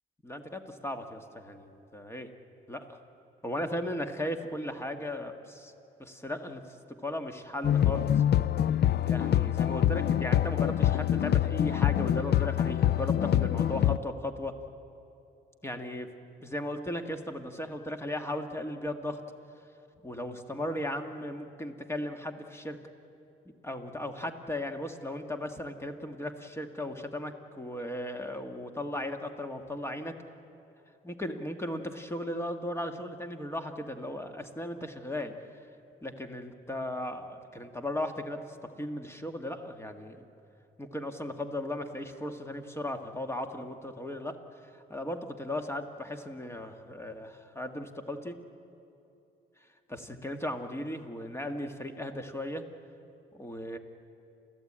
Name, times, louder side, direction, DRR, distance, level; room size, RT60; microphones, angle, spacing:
voice 1, 0.2-2.3 2.7-3.0 3.4-5.7 6.0-6.8 7.0-8.2 9.0-14.5 15.6-16.1 16.4-19.2 20.0-22.8 23.6-30.2 31.0-35.3 36.0-40.3 40.8-44.4 44.6-48.4 49.9-52.6 53.3-53.8, left 1 dB, 15° left, 6 dB, 1.7 m, -36 dB
sound 1, 7.6-14.0, left 11 dB, 55° left, 0.5 m, -25 dB
30.0 x 14.5 x 8.8 m, 2.8 s
cardioid pair, 90°, 20 cm